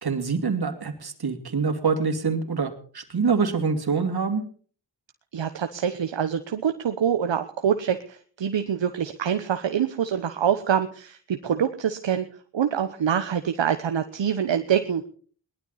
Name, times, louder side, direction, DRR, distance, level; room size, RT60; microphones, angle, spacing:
voice 1, 0.0-4.4, right 5 dB, 55° right, 6 dB, 2.8 m, -25 dB
voice 2, 5.3-12.3 12.5-15.1, right 8 dB, 70° right, 8 dB, 1.2 m, -25 dB
19.0 x 12.0 x 4.2 m, 0.43 s
cardioid pair, 45°, 46 cm